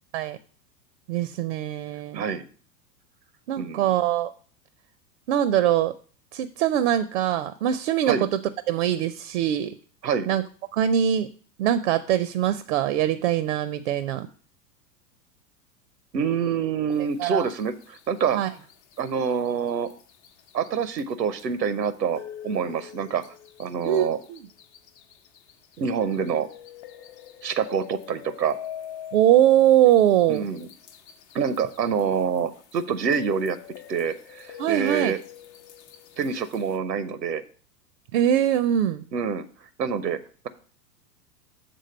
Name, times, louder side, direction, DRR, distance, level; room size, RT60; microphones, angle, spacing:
voice 1, 1.1-2.2 3.5-4.3 5.3-5.9 6.3-8.4 8.7-9.7 10.3-10.4 10.7-11.3 11.6-14.3 17.2-17.5 18.3-18.5 23.8-24.4 29.1-30.5 34.6-35.1 38.1-39.0, right 11 dB, 50° right, 14 dB, 0.5 m, -22 dB
voice 2, 2.1-2.4 3.6-3.8 8.1-8.2 10.0-10.3 16.1-18.4 19.0-19.9 20.5-23.2 23.6-24.2 25.8-26.5 27.4-28.6 30.3-30.7 31.3-33.6 33.9-35.2 36.2-37.4 39.1-39.4 39.8-40.2, right 6 dB, 85° right, 14 dB, 0.7 m, -26 dB
sound 1, 16.9-36.8, left 10 dB, 45° left, 0.8 m, -45 dB
6.9 x 3.7 x 6.2 m, 0.43 s
figure-of-eight pair, 95°, 49 cm